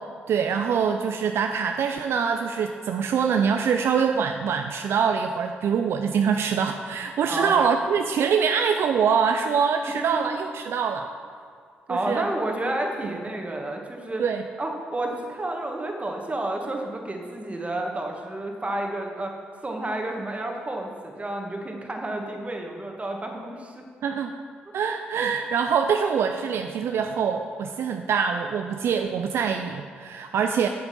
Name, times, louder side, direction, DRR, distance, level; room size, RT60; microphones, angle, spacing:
voice 1, 0.3-11.1 11.9-12.2 14.2-14.4 24.0-24.3 24.7-30.7, right 6 dB, 70° right, 5 dB, 0.4 m, -24 dB
voice 2, 7.3-7.6 11.9-14.2 14.6-19.3 19.6-23.8, right 1 dB, 30° right, 2 dB, 1.7 m, -30 dB
8.4 x 6.9 x 5.3 m, 2.2 s
hypercardioid pair, 45°, 5 cm